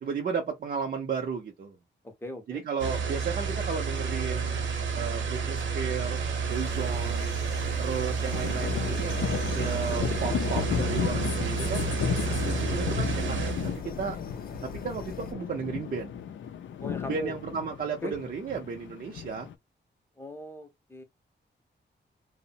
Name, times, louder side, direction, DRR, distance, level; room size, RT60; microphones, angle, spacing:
voice 1, 0.0-1.8 2.5-4.6 4.9-7.3 7.8-9.3 9.5-11.9 12.4-14.2 14.6-16.1 17.1-19.5, right 6 dB, 50° right, 0.5 m, -34 dB
voice 2, 2.0-2.6 16.8-17.3 18.0-18.1 20.2-21.0, left 2 dB, 10° left, 0.6 m, -39 dB
sound 1, 2.8-13.8, right 5 dB, 80° right, 0.8 m, -30 dB
sound 2, 6.5-15.3, left 4 dB, 50° left, 0.7 m, -41 dB
sound 3, 8.3-19.5, left 8 dB, 85° left, 0.5 m, -33 dB
2.9 x 2.0 x 2.6 m
wide cardioid pair, 180°, 19 cm